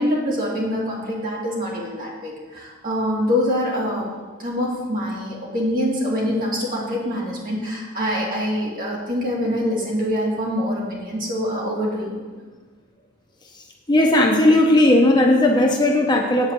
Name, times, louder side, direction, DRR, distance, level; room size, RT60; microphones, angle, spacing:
voice 1, 0.0-4.1 4.4-12.2, equal, 40° right, -4 dB, 2.4 m, -25 dB
voice 2, 13.9-16.5, left 1 dB, 20° left, 1 dB, 0.8 m, -16 dB
8.1 x 4.9 x 7.5 m, 1.4 s
head